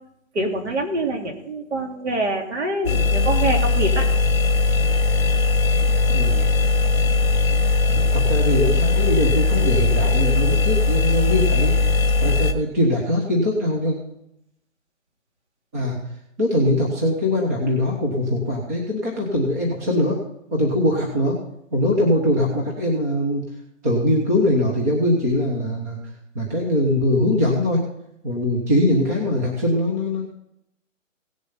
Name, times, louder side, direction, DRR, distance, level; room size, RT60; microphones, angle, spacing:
voice 1, 0.3-4.1, right 2 dB, 55° right, 2 dB, 3.0 m, -25 dB
sound 1, 2.9-12.5, left 3 dB, 50° left, 1.7 m, -19 dB
voice 2, 6.1-6.5 7.9-11.7 12.2-14.0 15.7-16.0 16.4-20.2 20.5-21.4 21.7-23.4 23.8-26.0 26.3-27.8 28.2-30.3, left 1 dB, 10° right, -2 dB, 1.1 m, -22 dB
17.5 x 7.2 x 5.6 m, 0.77 s
hypercardioid pair, 175°, 40 cm